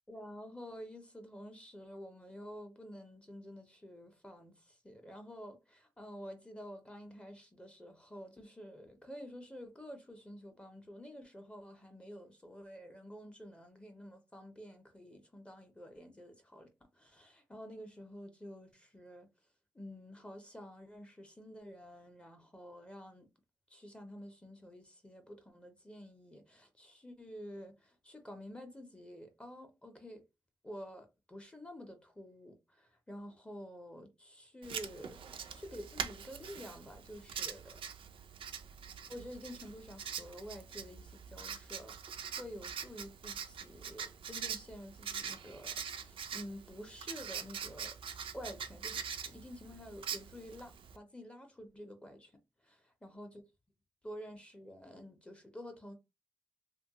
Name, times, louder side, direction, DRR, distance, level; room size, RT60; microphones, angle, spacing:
voice 1, 0.1-16.7 16.9-19.3 19.7-23.3 23.7-30.2 30.6-35.2 35.6-37.8 39.1-48.0 48.3-52.3 52.6-53.4 54.0-55.9, equal, 10° left, 0.5 m, -49 dB
Writing, 34.6-51.0, right 7 dB, 85° right, 0.4 m, -44 dB
2.9 x 2.2 x 2.7 m
wide cardioid pair, 160°, 9 cm